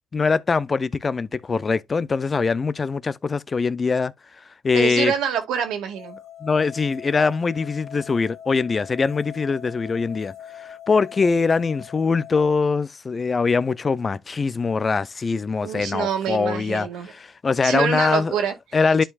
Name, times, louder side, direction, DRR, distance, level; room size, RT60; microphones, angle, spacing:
voice 1, 0.1-4.1 4.6-5.1 6.4-10.3 10.6-18.3 18.7-19.0, left 4 dB, 35° left, 0.5 m, -22 dB
voice 2, 4.7-6.2 15.6-17.1 17.6-18.6, right 8 dB, 90° right, 2.0 m, -26 dB
sound 1, 5.9-12.4, left 10 dB, 65° left, 1.8 m, -42 dB
11.0 x 4.6 x 2.4 m
cardioid pair, 90°, 0 cm